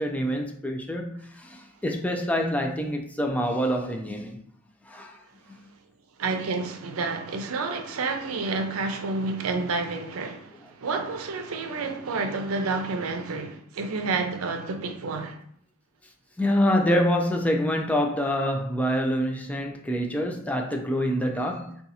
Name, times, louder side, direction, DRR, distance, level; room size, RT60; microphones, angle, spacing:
voice 1, 0.0-4.4 4.9-5.2 16.4-21.8, equal, 5° left, 0.3 m, -26 dB
voice 2, 6.2-15.4, right 3 dB, 85° right, 0.5 m, -29 dB
2.6 x 2.3 x 4.0 m
head